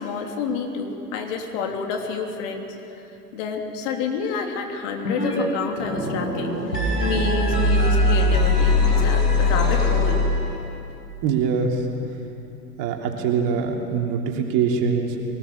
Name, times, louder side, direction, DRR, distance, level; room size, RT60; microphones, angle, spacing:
voice 1, 0.0-3.0 3.3-6.6 7.0-10.2, left 5 dB, 50° left, 3 dB, 3.1 m, -29 dB
sound 1, 5.0-5.4 5.7-10.7, left 2 dB, 85° left, 4.9 m, -21 dB
voice 2, 11.2-11.8 12.8-15.3, right 6 dB, 40° right, 2 dB, 3.1 m, -23 dB
23.0 x 19.5 x 7.1 m, 2.8 s
figure-of-eight pair, 90°, 48 cm